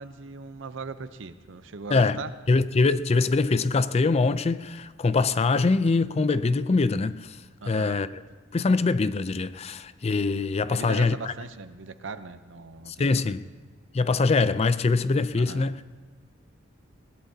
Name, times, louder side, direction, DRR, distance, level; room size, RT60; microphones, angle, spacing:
voice 1, 0.0-2.3 7.6-8.0 10.7-13.3 15.4-15.6, right 4 dB, 70° right, 0.7 m, -39 dB
voice 2, 2.5-7.4 7.7-8.1 8.5-11.3 12.9-13.4 13.9-15.8, left 3 dB, 30° left, 0.4 m, -23 dB
21.0 x 18.0 x 2.8 m
head